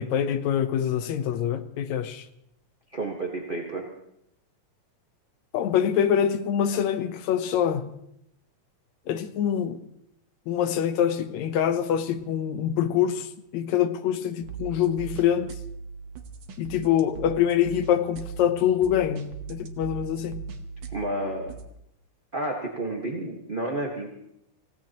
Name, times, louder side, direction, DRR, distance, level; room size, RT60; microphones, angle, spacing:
voice 1, 0.0-2.3 5.5-7.9 9.1-9.8 10.5-15.5 16.6-20.4, left 9 dB, 75° left, 2.1 m, -25 dB
voice 2, 2.9-3.8 20.9-21.6 22.3-24.1, right 2 dB, 30° right, 1.0 m, -31 dB
sound 1, 14.4-21.6, right 5 dB, 60° right, 1.3 m, -39 dB
26.5 x 16.5 x 3.0 m
omnidirectional pair, 3.4 m